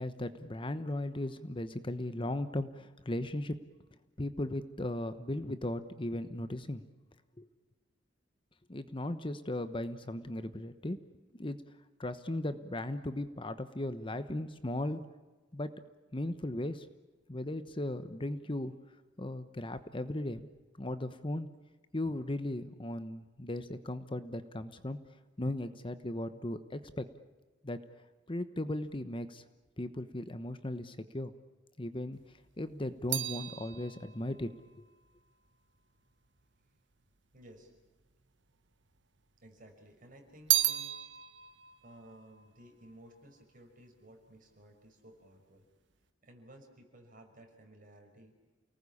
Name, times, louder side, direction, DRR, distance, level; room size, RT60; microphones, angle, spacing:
voice 1, 0.0-3.6 4.2-6.8 7.4-7.5 8.7-11.0 11.4-11.6 12.0-15.1 15.5-15.7 16.1-16.9 17.3-18.7 19.2-20.5 20.8-21.5 21.9-25.0 25.4-27.1 27.6-27.8 28.3-29.4 29.8-31.3 31.8-34.5, left 1 dB, 30° left, 11 dB, 1.1 m, -37 dB
sound 1, 32.1-36.6 37.3-38.2 38.4-39.6 39.9-43.4 43.7-44.2, right 13 dB, 70° right, 1.3 m, -36 dB
voice 2, 37.3-37.7 39.4-40.9 41.8-45.7 46.2-48.3, right 1 dB, 45° right, 3 dB, 5.9 m, -56 dB
29.0 x 19.5 x 8.6 m, 1.2 s
head